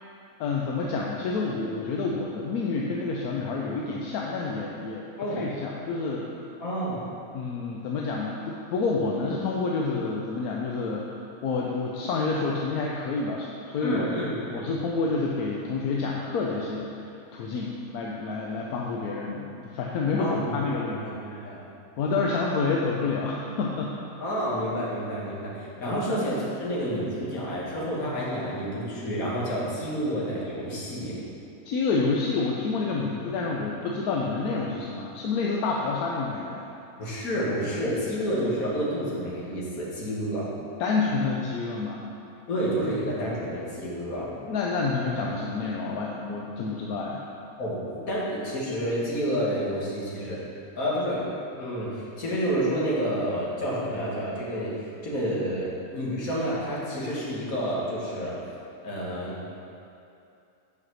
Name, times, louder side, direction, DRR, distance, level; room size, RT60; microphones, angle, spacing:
voice 1, 0.4-5.0 5.4-6.3 7.3-11.1 11.4-14.1 14.5-16.9 17.3-21.0 21.3-21.4 22.0-24.0 25.8-26.0 31.7-36.7 40.8-42.0 44.4-47.2, left 4 dB, 85° left, -2 dB, 1.1 m, -28 dB
voice 2, 6.6-7.0 13.8-14.7 20.2-21.6 24.2-31.2 37.0-40.5 42.5-44.3 47.6-50.4 50.8-51.2 51.5-54.7 55.0-58.4 58.8-59.4, equal, 70° left, -6 dB, 2.0 m, -29 dB
5.8 x 5.5 x 6.1 m, 2.7 s
omnidirectional pair, 1.6 m